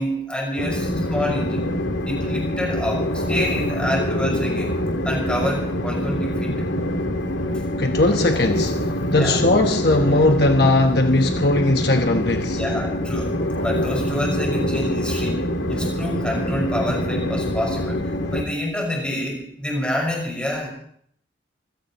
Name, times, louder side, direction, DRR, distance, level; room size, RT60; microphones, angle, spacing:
voice 1, 0.0-1.7 2.0-4.7 5.0-6.5 9.2-9.4 12.4-15.4 15.7-20.7, left 1 dB, 5° left, 5.8 m, -27 dB
Train, 0.6-18.4, equal, 90° left, 2.0 m, -25 dB
voice 2, 7.8-8.8 9.1-12.6, left 2 dB, 55° left, 1.2 m, -19 dB
26.5 x 16.5 x 3.1 m
head